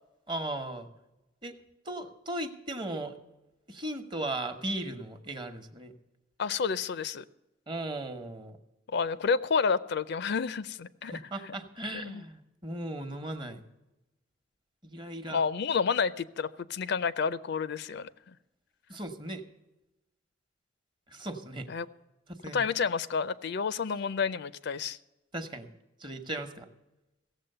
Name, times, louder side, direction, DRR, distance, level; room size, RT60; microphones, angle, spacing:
voice 1, 0.3-0.9 1.4-1.6 1.9-3.2 3.7-5.9 7.7-8.6 11.1-13.6 14.8-15.4 18.9-19.4 21.1-21.7 22.4-22.7 25.3-25.7 26.0-26.7, right 1 dB, 25° right, 7 dB, 1.1 m, -37 dB
voice 2, 6.4-7.2 8.9-11.1 12.0-12.2 15.3-18.1 21.7-21.9 22.5-25.0, left 5 dB, 65° left, 15 dB, 0.5 m, -29 dB
16.5 x 7.4 x 6.6 m, 0.96 s
head